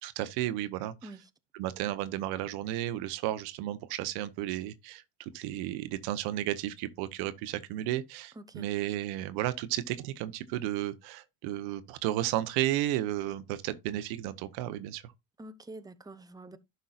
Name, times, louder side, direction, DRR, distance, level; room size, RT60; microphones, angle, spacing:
voice 1, 0.0-1.1 1.5-15.0, right 14 dB, 90° right, 0.9 m, -33 dB
voice 2, 8.4-8.7 15.4-16.6, right 2 dB, 10° right, 0.9 m, -46 dB
11.5 x 5.4 x 2.4 m
supercardioid pair, 90°, 36 cm